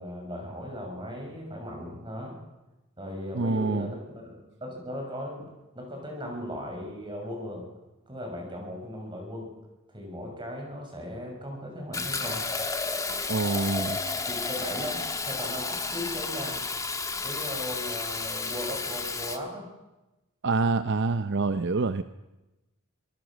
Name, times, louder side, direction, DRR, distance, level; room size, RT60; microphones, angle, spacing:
voice 1, 0.0-2.4 3.0-5.5 5.7-7.7 8.1-9.5 9.9-12.5 13.4-16.6 17.2-19.7, left 1 dB, 25° right, 1 dB, 6.6 m, -37 dB
voice 2, 3.3-3.9 13.3-14.0 20.4-22.0, right 3 dB, 55° right, 11 dB, 0.7 m, -26 dB
Fill (with liquid), 11.9-19.4, left 4 dB, 15° left, 1.4 m, -32 dB
25.0 x 19.0 x 6.4 m, 1.0 s
head